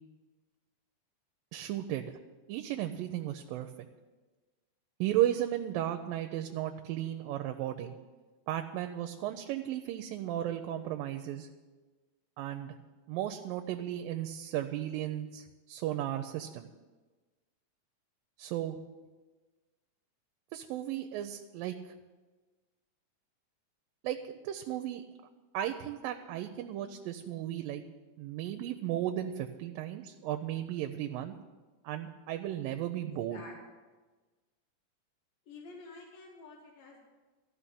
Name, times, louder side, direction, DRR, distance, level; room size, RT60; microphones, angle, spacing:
voice 1, 1.5-2.1 2.5-3.7 5.0-8.0 8.5-11.5 12.4-12.8 13.1-16.7 18.4-18.8 20.5-22.0 24.0-25.0 25.5-27.8 28.2-31.3 31.8-33.4, right 12 dB, 85° right, 6 dB, 2.4 m, -35 dB
voice 2, 33.0-33.6 35.5-37.0, left 3 dB, 90° left, -1 dB, 3.6 m, -50 dB
14.5 x 5.8 x 9.8 m, 1.3 s
omnidirectional pair, 4.0 m